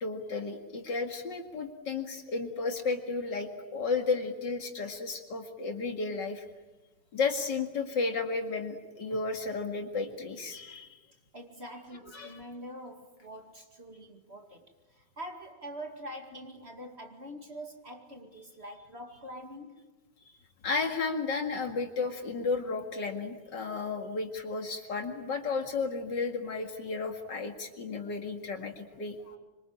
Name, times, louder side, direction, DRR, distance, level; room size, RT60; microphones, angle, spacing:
voice 1, 0.0-6.5 7.1-11.0 12.1-12.4 20.6-29.4, left 4 dB, 55° left, 2.7 m, -33 dB
voice 2, 11.3-19.8, equal, 30° right, 2.4 m, -45 dB
25.5 x 24.5 x 8.8 m
omnidirectional pair, 2.2 m